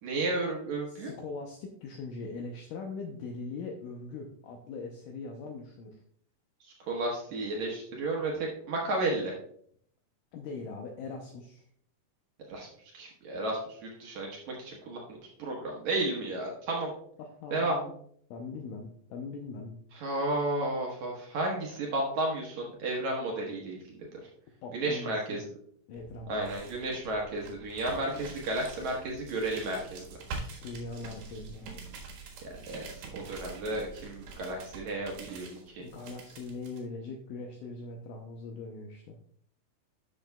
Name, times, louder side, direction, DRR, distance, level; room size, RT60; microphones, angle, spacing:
voice 1, 0.0-1.1 6.9-9.3 12.5-12.7 12.9-16.9 17.5-17.8 19.9-24.1 24.7-25.4 26.3-30.1 32.4-35.8, right 2 dB, 65° right, -1 dB, 2.1 m, -33 dB
voice 2, 0.9-6.0 10.3-11.6 17.2-17.9 18.3-19.8 24.6-25.4 25.9-26.6 30.6-31.7 35.8-39.2, left 3 dB, 75° left, 2 dB, 2.1 m, -41 dB
sound 1, 25.9-36.8, right 4 dB, 85° right, 3.4 m, -45 dB
12.0 x 6.4 x 2.3 m, 0.63 s
omnidirectional pair, 4.3 m